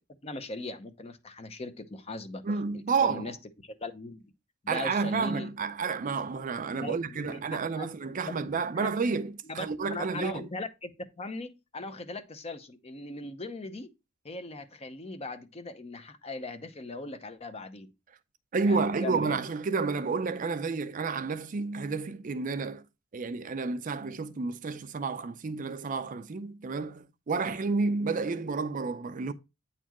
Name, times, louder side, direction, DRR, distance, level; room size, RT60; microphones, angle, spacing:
voice 1, 0.2-2.4 3.0-3.4 3.6-4.3 4.6-5.5 6.8-7.9 8.2-8.9 9.5-10.9 11.2-13.9 14.2-17.9 18.6-19.4, left 2 dB, 30° left, 0.7 m, -39 dB
voice 2, 2.4-3.2 4.7-10.4 18.5-22.8 23.1-29.3, right 4 dB, 40° right, 0.4 m, -30 dB
9.1 x 4.2 x 2.9 m
head